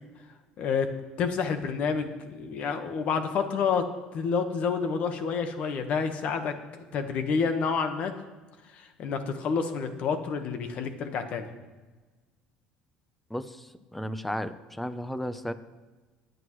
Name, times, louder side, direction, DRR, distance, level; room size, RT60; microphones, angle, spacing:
voice 1, 0.6-0.9 1.2-3.8 4.1-8.1 8.8-11.5, left 5 dB, 55° left, 8 dB, 1.2 m, -29 dB
voice 2, 13.3-15.5, equal, 5° left, 12 dB, 0.7 m, -34 dB
21.0 x 8.0 x 3.1 m, 1.3 s
cardioid pair, 110°, 3 cm